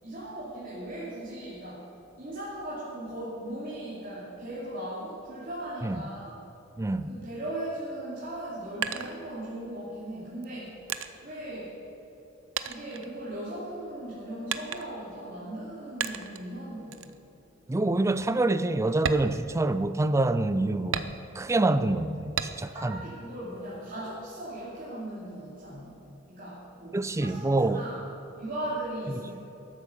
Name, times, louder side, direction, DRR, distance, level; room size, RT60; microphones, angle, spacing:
voice 1, 0.0-1.9 2.2-6.4 7.0-10.7 11.2-11.7 12.6-17.1 22.7-26.0 26.3-28.0 28.4-29.3, right 1 dB, 45° right, -10 dB, 2.8 m, -38 dB
voice 2, 6.8-7.1 17.7-23.0 26.9-27.8, right 2 dB, 15° right, 13 dB, 0.4 m, -26 dB
sound 1, 8.3-9.8 10.4-12.3 12.6-13.7 14.5-15.1 16.0-16.5 16.9-17.2 17.6-17.7 18.1-18.3 18.9-20.1 20.9-21.6 22.4-22.9 23.3-24.1, right 7 dB, 80° right, 0.6 m, -35 dB
12.5 x 7.9 x 6.7 m, 2.9 s
head